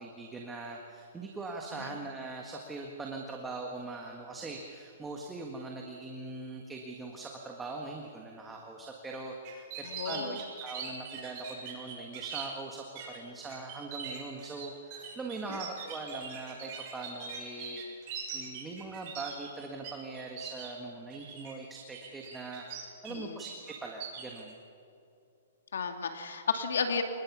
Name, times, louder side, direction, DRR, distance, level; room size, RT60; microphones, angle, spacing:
voice 1, 0.0-24.5, right 3 dB, 10° right, 0 dB, 1.6 m, -42 dB
sound 1, 9.4-12.5 13.0-13.2 13.5-19.9 20.1-20.7 21.1-21.5 21.9-23.1 23.4-24.4, right 7 dB, 30° right, 7.8 m, -41 dB
voice 2, 9.8-10.4 15.4-15.5 23.1-23.4 25.7-27.0, left 5 dB, 85° left, 5 dB, 2.5 m, -33 dB
28.0 x 20.5 x 6.2 m, 2.6 s
hypercardioid pair, 165°, 0 cm